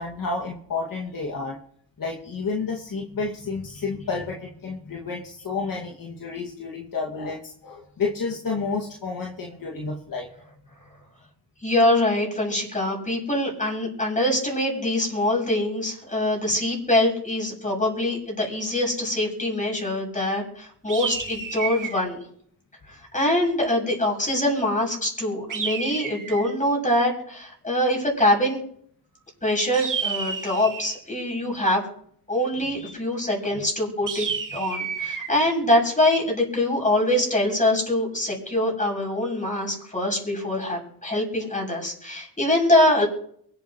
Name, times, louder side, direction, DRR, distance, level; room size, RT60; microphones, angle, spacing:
voice 1, 0.0-1.6 2.0-10.3 32.6-32.9 33.5-33.6, left 4 dB, 50° left, -2 dB, 2.1 m, -30 dB
voice 2, 11.6-22.2 23.1-28.6 29.4-31.8 32.3-43.1, left 1 dB, 15° left, -1 dB, 7.1 m, -24 dB
sound 1, 20.9-22.0 25.5-26.5 29.7-31.0 34.1-35.3, right 6 dB, 45° right, 2.4 m, -30 dB
23.5 x 9.0 x 3.1 m, 0.64 s
cardioid pair, 75°, 44 cm